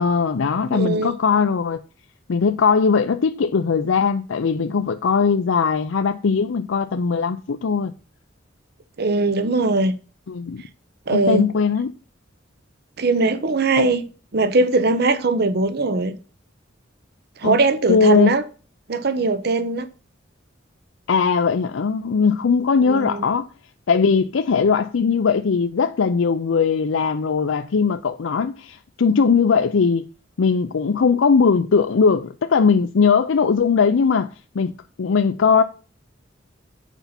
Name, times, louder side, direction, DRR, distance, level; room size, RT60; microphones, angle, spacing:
voice 1, 0.0-1.8 2.3-7.9 10.3-10.6 11.1-11.9 13.8-13.9 17.4-17.6 17.9-18.3 21.1-23.5 23.9-30.1 30.4-34.3 34.5-34.7 35.0-35.6, left 5 dB, 85° left, 0.5 m, -19 dB
voice 2, 0.7-1.1 9.0-9.9 11.1-11.5 13.0-14.0 14.3-16.2 17.4-18.4 18.9-19.9 22.8-23.2, right 3 dB, 55° right, 0.8 m, -20 dB
8.1 x 5.6 x 5.8 m
head